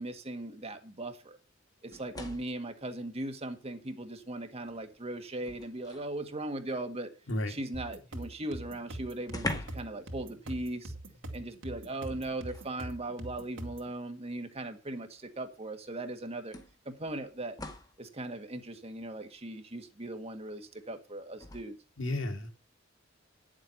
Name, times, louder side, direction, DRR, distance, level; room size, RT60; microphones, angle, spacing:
voice 1, 0.0-1.4 1.8-7.1 7.5-10.9 11.3-16.5 16.9-17.6 18.0-21.8, right 1 dB, 30° right, 1.8 m, -38 dB
sound 1, 1.9-2.6 4.0-4.1 4.6-6.2 8.2-8.3 8.6-8.7 9.2-10.0 10.3-10.5 12.0-12.8 13.9-14.0 15.5-15.6 16.5-18.0 21.3-21.6, left 2 dB, 20° left, 1.7 m, -42 dB
sound 2, 7.7-13.9, right 1 dB, 75° right, 2.8 m, -43 dB
voice 2, 22.0-22.5, left 1 dB, 80° left, 2.2 m, -32 dB
10.5 x 7.7 x 5.9 m
head